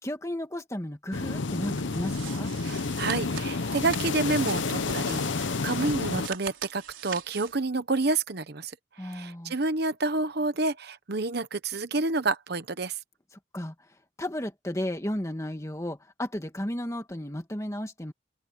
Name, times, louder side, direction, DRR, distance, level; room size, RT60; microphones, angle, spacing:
voice 1, 0.0-2.5 9.0-9.6 13.5-13.7 14.2-18.1, left 1 dB, 15° left, 2.0 m, -34 dB
sound 1, 1.1-6.3, left 3 dB, 70° left, 0.8 m, -30 dB
sound 2, 1.7-7.6, right 8 dB, 85° right, 4.2 m, -42 dB
voice 2, 2.6-8.7 9.0-13.0, right 3 dB, 55° right, 1.0 m, -29 dB
open air
head